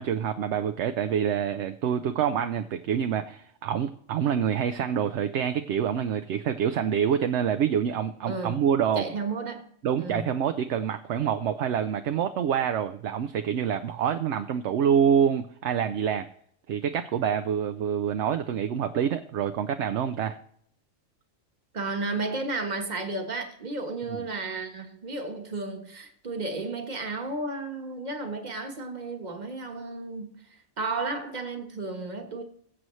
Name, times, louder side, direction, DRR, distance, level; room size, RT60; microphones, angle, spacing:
voice 1, 0.0-9.0 9.8-16.3 16.7-20.4 24.1-24.2, right 8 dB, 65° right, 0.8 m, -26 dB
voice 2, 8.3-8.6 8.9-9.7 10.0-10.2 21.7-32.4, right 3 dB, 35° right, 1.3 m, -33 dB
21.0 x 7.7 x 3.1 m
omnidirectional pair, 1.4 m